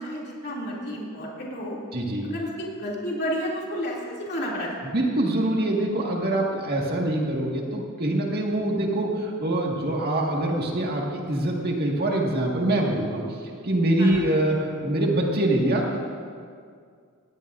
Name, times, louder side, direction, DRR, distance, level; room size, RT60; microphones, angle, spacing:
voice 1, 0.0-1.8 2.2-4.7 14.0-14.3, equal, 50° left, -4 dB, 2.8 m, -31 dB
voice 2, 1.9-2.3 4.9-13.4 13.6-16.0, right 1 dB, 45° right, -1 dB, 1.9 m, -24 dB
19.5 x 16.0 x 2.7 m, 2.2 s
head